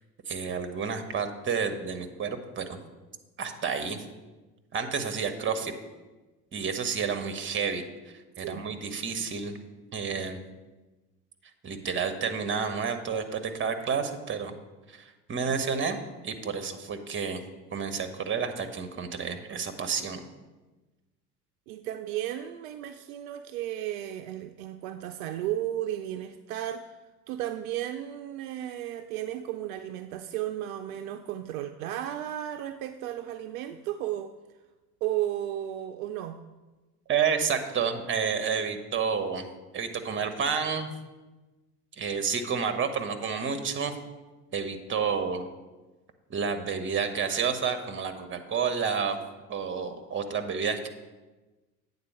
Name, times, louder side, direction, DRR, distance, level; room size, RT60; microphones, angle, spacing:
voice 1, 0.3-2.8 3.4-4.0 4.7-5.7 6.5-7.8 8.4-9.5 9.9-10.4 11.6-14.5 14.9-16.0 16.2-17.4 17.7-20.2 37.1-39.5 39.7-40.9 42.0-44.0 44.5-45.5 46.3-49.2 49.5-50.9, right 6 dB, 25° right, 8 dB, 1.0 m, -30 dB
voice 2, 21.7-26.9 27.3-34.3 35.0-36.4, right 12 dB, 60° right, 7 dB, 0.5 m, -34 dB
8.7 x 4.0 x 6.9 m, 1.2 s
figure-of-eight pair, 60°, 47 cm